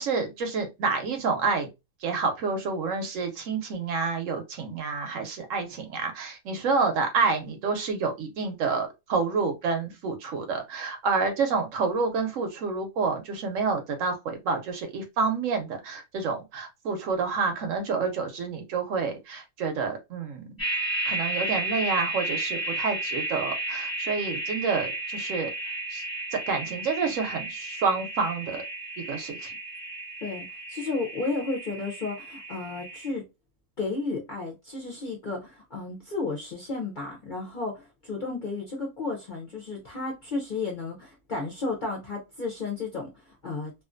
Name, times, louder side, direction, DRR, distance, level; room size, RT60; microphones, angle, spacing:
voice 1, 0.0-1.7 2.0-20.5 21.1-25.5 25.9-26.0 26.3-28.6 29.0-29.5, right 4 dB, 70° right, 0.9 m, -28 dB
sound 1, 20.6-33.1, right 2 dB, 15° left, 1.0 m, -33 dB
voice 2, 30.2-33.2 33.8-43.7, left 3 dB, 50° left, 0.5 m, -33 dB
2.4 x 2.4 x 2.4 m
omnidirectional pair, 1.6 m